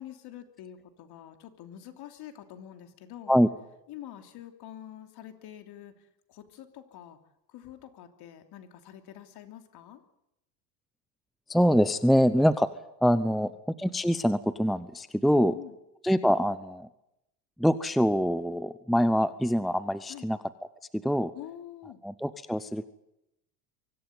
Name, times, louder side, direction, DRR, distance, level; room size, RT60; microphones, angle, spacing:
voice 1, 0.0-3.3 3.9-5.9 6.3-7.2 7.5-10.0 15.3-15.8 20.1-20.3 21.3-22.0, left 11 dB, 50° left, 6 dB, 3.2 m, -46 dB
voice 2, 11.5-12.7 13.0-13.5 13.8-15.5 16.0-16.9 17.6-20.4 20.9-21.3 22.0-22.8, equal, ahead, 13 dB, 0.8 m, -24 dB
24.5 x 15.5 x 9.3 m, 0.86 s
supercardioid pair, 105°, 49 cm